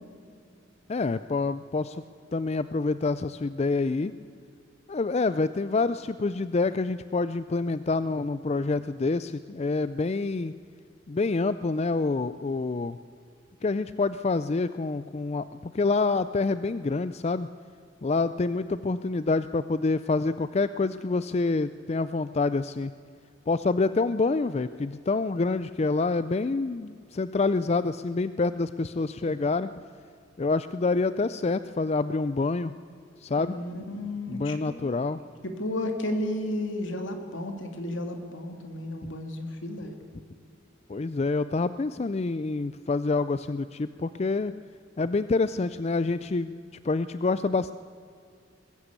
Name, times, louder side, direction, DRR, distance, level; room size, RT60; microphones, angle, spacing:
voice 1, 0.9-2.0 2.3-4.1 4.9-10.5 11.1-13.0 13.6-15.5 15.7-17.5 18.0-22.9 23.5-29.7 30.4-32.7 33.2-33.6 34.3-35.2 39.0-39.1 40.9-44.5 45.0-46.5 46.8-47.7, left 3 dB, 30° left, 14 dB, 0.4 m, -27 dB
voice 2, 33.4-34.7 35.4-39.9, left 1 dB, 75° left, 5 dB, 2.6 m, -33 dB
21.5 x 15.0 x 8.2 m, 2.3 s
head